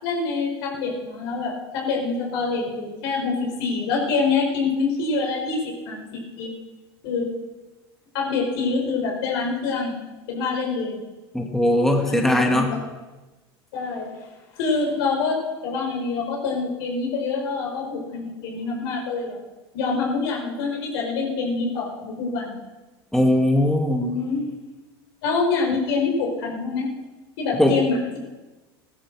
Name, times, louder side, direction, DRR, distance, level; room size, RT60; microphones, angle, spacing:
voice 1, 0.0-6.5 7.0-7.3 8.1-10.0 10.3-11.0 12.1-12.6 13.7-14.1 14.5-19.4 19.7-22.6 24.0-24.5 25.2-26.9 27.4-28.2, left 4 dB, 70° left, 0 dB, 5.1 m, -26 dB
voice 2, 11.3-12.7 23.1-24.1 27.6-27.8, left 1 dB, 5° left, 2 dB, 2.0 m, -19 dB
16.5 x 12.0 x 6.2 m, 1.2 s
hypercardioid pair, 95°, 13 cm